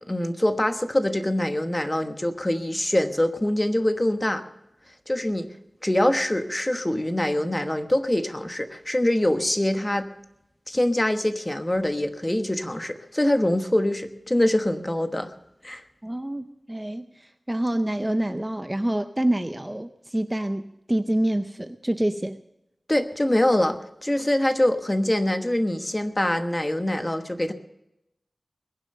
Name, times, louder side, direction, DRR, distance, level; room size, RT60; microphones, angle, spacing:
voice 1, 0.1-4.4 5.1-5.5 5.8-10.1 10.7-15.3 15.6-15.8 22.9-27.5, left 1 dB, 20° left, 8 dB, 1.1 m, -24 dB
voice 2, 16.0-20.6 20.9-22.4, right 1 dB, 15° right, 10 dB, 0.5 m, -27 dB
21.0 x 7.6 x 6.6 m, 0.86 s
wide cardioid pair, 75°, 0 cm